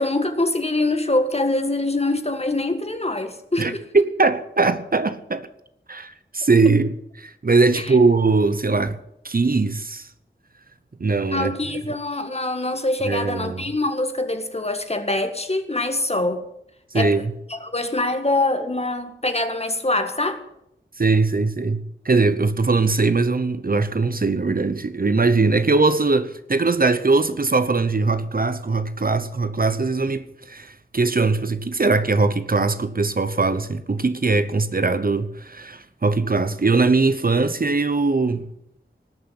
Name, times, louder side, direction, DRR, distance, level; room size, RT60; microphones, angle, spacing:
voice 1, 0.0-3.8 7.7-7.9 11.3-16.4 16.9-17.1 17.5-20.4, left 2 dB, 30° left, 1.8 m, -24 dB
voice 2, 3.6-5.5 5.9-9.0 9.2-10.1 11.0-11.5 13.0-13.6 16.9-17.3 21.0-38.4, right 3 dB, 45° right, 0.9 m, -21 dB
19.0 x 6.8 x 9.6 m
wide cardioid pair, 75°, 20 cm